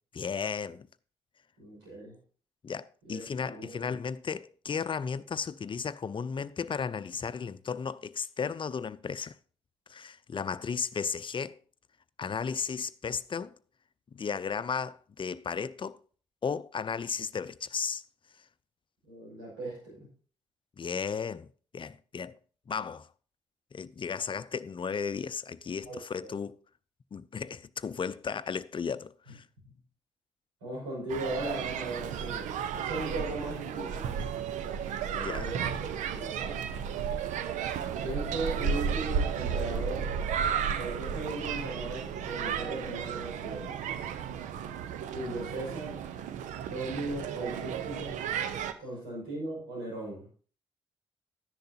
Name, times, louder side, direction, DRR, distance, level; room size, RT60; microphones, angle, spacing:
voice 1, 0.1-0.9 2.6-9.4 9.9-11.6 12.2-13.6 14.1-16.0 16.4-18.0 20.8-21.5 21.7-22.4 22.7-23.1 23.7-26.6 27.1-29.5 35.1-35.5, left 6 dB, 40° left, 0.6 m, -34 dB
voice 2, 1.6-2.2 3.0-3.9 19.0-20.1 25.8-26.0 29.3-29.4 29.6-29.7 30.6-34.3 35.2-35.7 36.1-36.6 38.0-40.1 40.8-43.9 45.1-46.0 46.6-48.2 48.8-50.3, right 2 dB, 90° right, 5.7 m, -38 dB
sound 1, 31.1-48.7, right 7 dB, 70° right, 0.8 m, -33 dB
12.0 x 10.5 x 2.8 m
hypercardioid pair, 40°, 13 cm